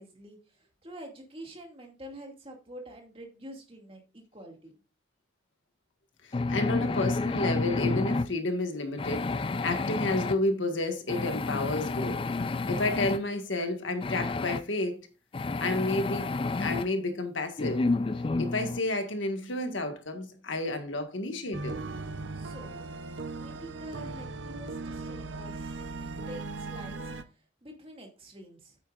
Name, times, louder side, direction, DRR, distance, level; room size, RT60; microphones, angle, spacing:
voice 1, 0.0-4.7 22.3-23.0 23.3-27.1 27.6-28.8, right 1 dB, 30° right, 2.3 m, -47 dB
voice 2, 6.2-12.3 12.7-15.0 15.6-17.9 18.4-21.8, left 2 dB, 90° left, 1.7 m, -31 dB
sound 1, 6.3-8.3 9.0-10.4 11.1-13.2 14.0-14.6 15.3-16.9 17.6-18.8, left 3 dB, 30° left, 0.3 m, -30 dB
sound 2, 21.5-27.2, right 3 dB, 85° right, 0.8 m, -38 dB
9.0 x 8.5 x 2.5 m
head